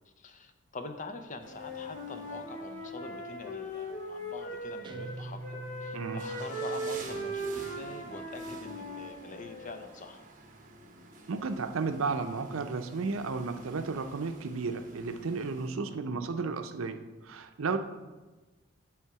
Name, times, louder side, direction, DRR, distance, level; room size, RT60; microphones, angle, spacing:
voice 1, 0.2-10.2 15.9-16.2, left 3 dB, 40° left, 7 dB, 0.6 m, -45 dB
Wind instrument woodwind instrument, 1.4-5.1 5.4-9.8, right 1 dB, 65° left, 2.0 m, -39 dB
sound 1, 1.4-15.7, right 2 dB, 40° right, 1.0 m, -51 dB
Guitar, 4.8-7.4, right 2 dB, 25° right, 0.3 m, -44 dB
voice 2, 11.3-17.8, right 4 dB, 75° right, 8 dB, 0.6 m, -33 dB
10.0 x 3.5 x 4.7 m, 1.2 s
head